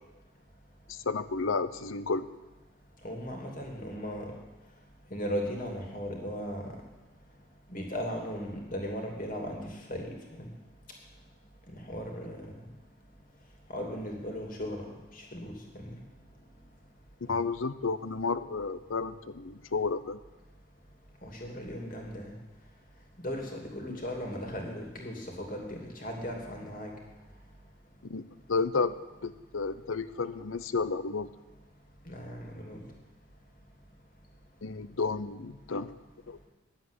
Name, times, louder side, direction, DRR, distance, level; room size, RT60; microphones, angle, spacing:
voice 1, 0.9-2.3 17.3-20.2 28.1-28.9 29.2-31.3 34.6-35.9 36.3-36.4, left 4 dB, 70° left, 14 dB, 0.7 m, -32 dB
voice 2, 3.0-4.3 5.1-6.7 7.7-10.5 11.7-12.6 13.7-14.9 15.1-16.0 21.2-22.3 23.2-26.9 32.1-32.8, equal, 40° left, 1 dB, 2.7 m, -37 dB
10.5 x 7.9 x 9.8 m, 1.1 s
head